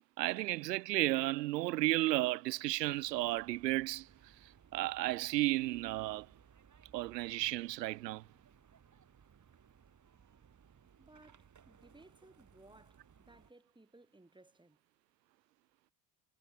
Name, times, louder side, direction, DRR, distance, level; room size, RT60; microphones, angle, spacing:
voice 1, 0.2-4.1 4.7-6.3 6.9-8.2, right 18 dB, 80° right, 1.0 m, -33 dB
sound 1, 2.9-13.5, right 7 dB, 35° right, 6.8 m, -63 dB
voice 2, 11.0-14.8, right 2 dB, 10° right, 5.8 m, -61 dB
hypercardioid pair, 65°, 48 cm